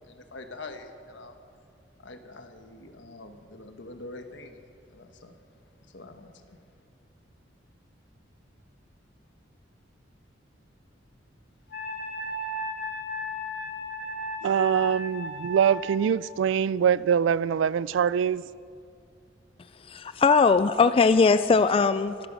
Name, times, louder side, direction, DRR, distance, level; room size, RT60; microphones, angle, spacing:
voice 1, 0.0-1.4 2.0-5.4 5.9-6.6, left 2 dB, 75° left, 1.3 m, -45 dB
Wind instrument woodwind instrument, 11.7-16.0, equal, 60° left, 1.8 m, -35 dB
voice 2, 14.4-18.5, right 8 dB, 85° right, 0.3 m, -24 dB
voice 3, 19.8-22.3, left 4 dB, 30° left, 0.3 m, -20 dB
23.0 x 9.2 x 6.2 m
head